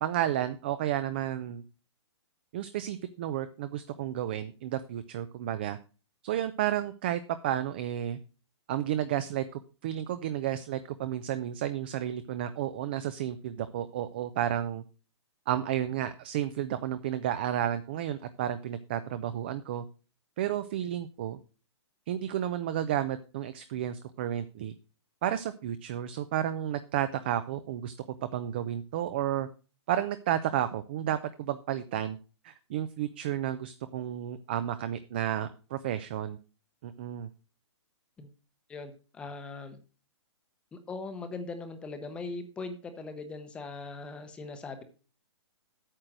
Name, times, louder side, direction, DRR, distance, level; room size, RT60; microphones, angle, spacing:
voice 1, 0.0-1.6 2.5-5.8 6.2-8.2 8.7-14.8 15.5-19.8 20.4-21.4 22.1-24.7 25.2-28.1 28.3-29.5 29.9-32.2 32.4-36.4 36.8-37.3, right 11 dB, 25° right, 12 dB, 0.4 m, -32 dB
voice 2, 38.7-39.8 40.7-44.8, left 3 dB, 5° left, 9 dB, 0.8 m, -40 dB
8.8 x 6.6 x 6.0 m, 0.34 s
hypercardioid pair, 170°, 15 cm